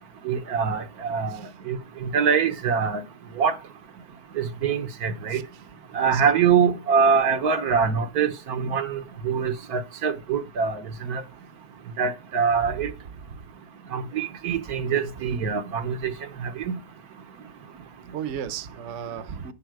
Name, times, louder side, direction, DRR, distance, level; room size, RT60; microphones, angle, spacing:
voice 1, 0.2-1.4 1.7-3.0 3.4-3.6 4.4-5.4 5.9-11.2 12.0-12.9 13.9-16.1 16.4-16.8, right 6 dB, 75° right, 1.5 m, -24 dB
voice 2, 5.3-5.6 5.9-6.2 12.7-12.9 13.2-13.4 18.1-19.5, right 8 dB, 55° right, 1.0 m, -36 dB
11.5 x 7.2 x 4.7 m
omnidirectional pair, 1.7 m